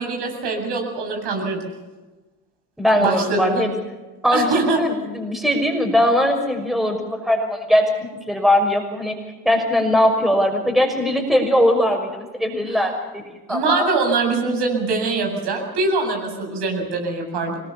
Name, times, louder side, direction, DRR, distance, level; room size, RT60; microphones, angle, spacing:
voice 1, 0.0-1.7 3.0-3.6 4.3-4.8 12.7-12.9 13.5-17.6, right 3 dB, 55° right, 2 dB, 7.9 m, -23 dB
voice 2, 2.8-3.7 4.2-7.9 8.3-9.1 9.4-13.2 13.5-13.9, left 1 dB, ahead, 4 dB, 6.0 m, -20 dB
25.5 x 21.0 x 7.3 m, 1.2 s
figure-of-eight pair, 55°, 48 cm